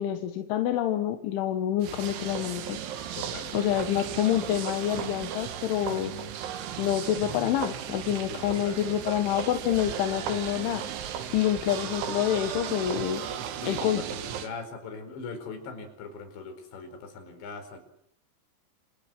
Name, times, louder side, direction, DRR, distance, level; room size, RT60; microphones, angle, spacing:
voice 1, 0.0-2.8 3.5-6.1 6.8-10.8 11.3-13.2 13.7-14.0, left 11 dB, 90° left, 6 dB, 4.0 m, -27 dB
sound 1, 1.8-14.5, right 9 dB, 80° right, 4.3 m, -36 dB
voice 2, 3.1-3.6 8.3-9.2 11.3-11.4 13.6-17.8, left 4 dB, 70° left, 7 dB, 6.9 m, -41 dB
28.5 x 27.0 x 7.8 m, 0.71 s
omnidirectional pair, 5.3 m